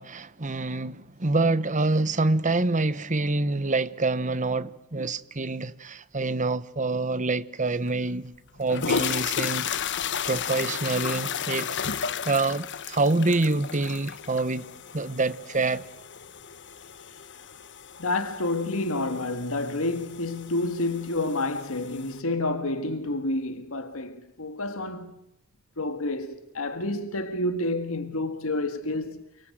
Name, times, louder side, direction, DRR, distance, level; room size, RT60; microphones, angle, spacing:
voice 1, 0.0-8.3 8.6-9.9 10.2-11.7 12.2-14.7 14.9-15.8, right 3 dB, 35° right, 1.2 m, -26 dB
sound 1, 7.9-8.0 8.6-22.2, left 7 dB, 60° left, 1.2 m, -34 dB
voice 2, 18.0-25.1 25.8-29.3, left 2 dB, 75° left, 1.9 m, -29 dB
29.5 x 25.5 x 8.0 m
head